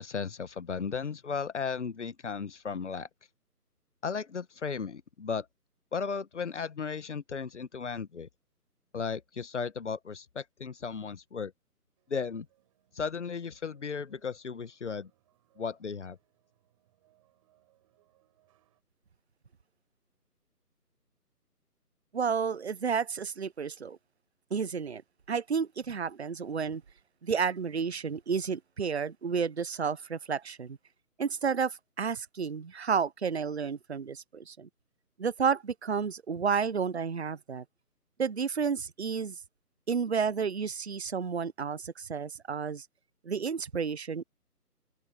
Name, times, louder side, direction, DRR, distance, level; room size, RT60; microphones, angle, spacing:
voice 1, 0.0-3.1 4.0-5.5 5.9-8.3 8.9-11.5 12.1-12.5 12.9-15.1 15.6-16.2, left 5 dB, 45° left, 1.5 m, -35 dB
sound 1, 12.0-18.8, right 15 dB, 20° right, 7.0 m, -71 dB
voice 2, 22.1-24.0 24.5-25.0 25.3-26.8 27.2-30.8 31.2-34.7 35.2-37.6 38.2-39.4 39.9-42.9 43.2-44.2, right 6 dB, 45° right, 0.7 m, -31 dB
open air
figure-of-eight pair, 155°, 47 cm